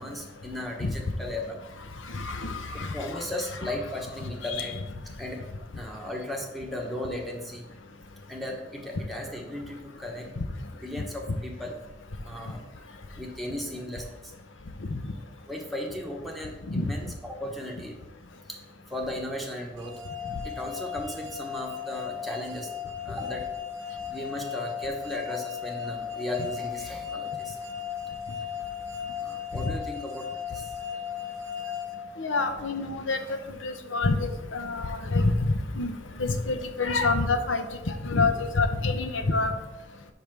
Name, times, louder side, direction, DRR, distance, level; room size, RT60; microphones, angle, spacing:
voice 1, 0.0-1.6 2.7-4.8 5.2-5.5 5.7-7.7 8.3-10.3 10.8-11.7 12.2-12.6 13.2-14.3 15.2-18.0 18.5-18.6 18.9-19.9 20.4-22.7 23.0-23.4 24.1-27.6 29.2-30.7 34.7-34.9, left 1 dB, ahead, -1 dB, 1.1 m, -36 dB
voice 2, 2.0-3.2 4.5-4.7 11.0-11.1 14.9-15.1 16.7-16.9 29.5-29.7 32.2-39.5, left 3 dB, 85° left, 7 dB, 0.8 m, -27 dB
sound 1, 19.8-32.8, left 8 dB, 80° right, 0.8 m, -36 dB
5.3 x 4.9 x 6.1 m, 1.0 s
head